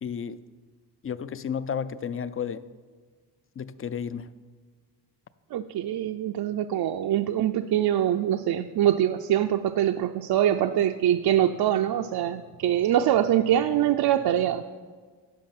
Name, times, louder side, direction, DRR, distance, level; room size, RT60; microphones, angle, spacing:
voice 1, 0.0-0.4 1.0-2.7 3.6-4.3, left 7 dB, 35° left, 15 dB, 0.4 m, -32 dB
voice 2, 5.5-14.6, right 11 dB, 65° right, 6 dB, 0.5 m, -24 dB
10.5 x 6.7 x 5.7 m, 1.5 s
cardioid pair, 105°, 41 cm